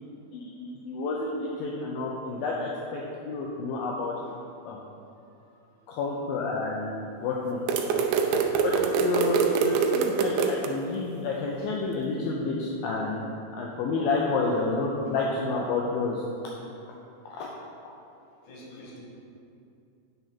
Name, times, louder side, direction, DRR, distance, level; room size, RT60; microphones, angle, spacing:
voice 1, 0.3-4.1 4.7-4.8 5.9-7.6 8.6-13.3 13.5-16.2 17.4-17.5 18.7-18.8, left 3 dB, 80° left, -2 dB, 2.3 m, -30 dB
sound 1, 7.7-10.7, right 6 dB, 85° right, 1.9 m, -24 dB
voice 2, 14.0-14.3 18.4-19.0, equal, 60° left, -4 dB, 2.4 m, -41 dB
9.2 x 4.0 x 5.7 m, 2.6 s
omnidirectional pair, 4.4 m